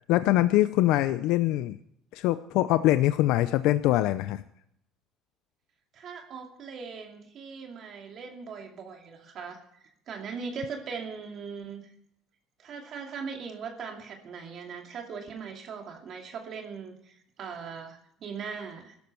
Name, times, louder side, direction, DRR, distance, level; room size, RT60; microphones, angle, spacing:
voice 1, 0.1-1.8 2.1-4.4, left 15 dB, 80° left, 12 dB, 0.6 m, -23 dB
voice 2, 5.9-11.8 12.6-19.0, right 5 dB, 50° right, 3 dB, 2.5 m, -40 dB
17.0 x 12.5 x 4.6 m, 0.72 s
cardioid pair, 110°, 0 cm